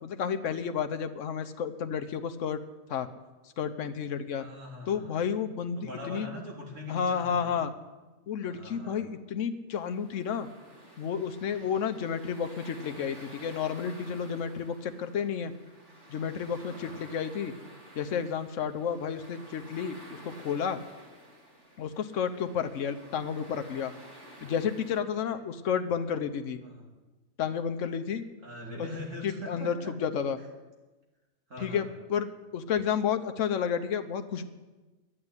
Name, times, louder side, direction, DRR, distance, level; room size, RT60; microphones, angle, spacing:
voice 1, 0.0-2.6 2.9-3.1 3.6-4.4 4.9-6.3 6.9-7.7 8.3-10.5 11.0-15.5 16.1-17.5 18.0-20.0 20.2-20.8 21.8-23.9 24.4-26.6 27.4-28.2 29.2-30.4 31.6-32.3 32.5-34.4, left 7 dB, 85° left, 9 dB, 1.2 m, -31 dB
voice 2, 4.4-5.2 5.8-7.6 8.4-9.1 16.6-17.0 25.3-25.4 26.6-26.9 28.4-30.0 30.4-30.5 31.5-31.9, left 1 dB, 85° right, -2 dB, 3.3 m, -42 dB
sound 1, 9.7-25.0, right 1 dB, 70° right, 3.0 m, -51 dB
11.0 x 8.8 x 9.6 m, 1.2 s
omnidirectional pair, 1.3 m